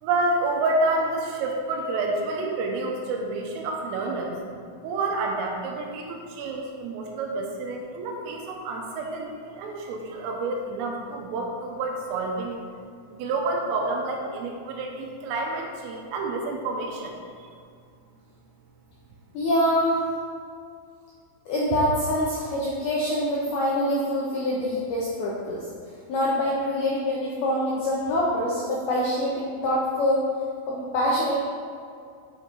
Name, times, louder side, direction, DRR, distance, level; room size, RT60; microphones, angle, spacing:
voice 1, 0.0-4.4 4.8-12.6 13.1-17.2 17.4-17.5, right 2 dB, 85° right, 1 dB, 3.6 m, -29 dB
voice 2, 19.3-20.0 21.5-25.6 26.1-30.2 30.7-31.4, left 1 dB, 80° left, -5 dB, 2.2 m, -25 dB
8.3 x 7.1 x 3.8 m, 2.3 s
omnidirectional pair, 5.8 m